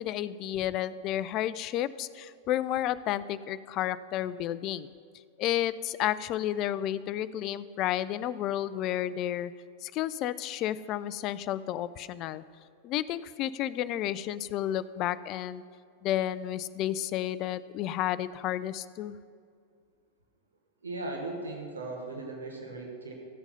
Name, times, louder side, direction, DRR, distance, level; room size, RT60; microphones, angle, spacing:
voice 1, 0.0-4.9 5.4-9.5 9.8-12.4 12.8-15.6 16.0-19.2, left 12 dB, 40° left, 16 dB, 0.3 m, -31 dB
voice 2, 20.8-23.1, right 2 dB, 75° right, 1 dB, 1.3 m, -37 dB
14.5 x 7.1 x 5.4 m, 2.2 s
figure-of-eight pair, 90°, 0 cm